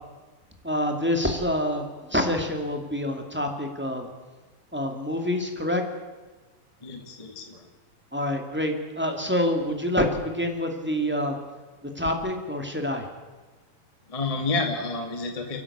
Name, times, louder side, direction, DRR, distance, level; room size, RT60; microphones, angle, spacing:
voice 1, 0.6-4.1 4.7-5.8 8.1-11.4 11.9-13.0, left 1 dB, 5° right, 3 dB, 1.3 m, -27 dB
voice 2, 6.8-7.6 14.1-15.6, left 3 dB, 15° left, 3 dB, 1.4 m, -29 dB
29.5 x 11.5 x 8.6 m, 1.3 s
omnidirectional pair, 4.0 m